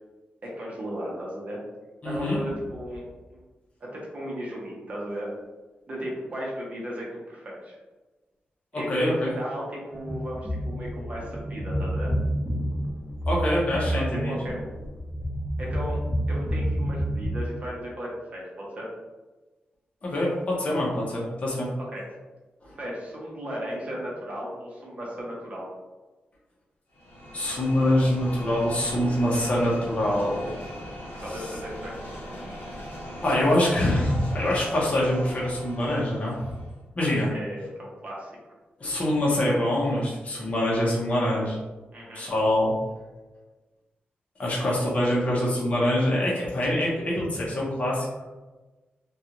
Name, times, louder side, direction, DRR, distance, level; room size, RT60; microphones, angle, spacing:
voice 1, 0.4-1.6 2.0-3.4 3.9-5.3 5.9-7.8 8.7-12.1 13.9-14.7 15.6-16.0 16.3-18.9 21.9-22.0 22.8-25.7 31.2-32.0 37.0-38.3 41.9-42.3, equal, 40° right, -4 dB, 0.8 m, -36 dB
voice 2, 2.0-2.4 8.7-9.3 13.3-14.3 20.0-21.7 27.3-30.6 31.3-31.5 33.2-36.4 37.0-37.3 38.8-41.6 42.1-42.7 44.4-48.1, left 1 dB, 35° left, -5 dB, 0.7 m, -24 dB
sound 1, 9.9-17.3, equal, ahead, 0.9 m, -29 dB
sound 2, 26.9-36.8, equal, 90° left, 0.9 m, -39 dB
2.5 x 2.3 x 2.9 m, 1.2 s
wide cardioid pair, 135°, 4 cm